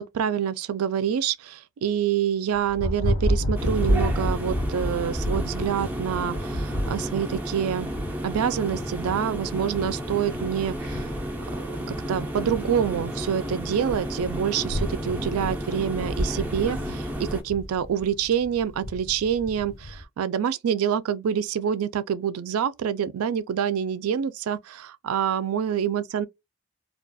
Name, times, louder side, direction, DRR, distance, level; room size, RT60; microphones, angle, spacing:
voice 1, 0.0-7.9 8.2-11.1 11.6-26.3, right 8 dB, 85° right, 0.3 m, -27 dB
Thunder, 2.5-20.0, equal, 60° left, 0.5 m, -32 dB
sound 1, 3.6-17.4, right 1 dB, 10° right, 0.3 m, -32 dB
2.3 x 2.3 x 2.5 m
head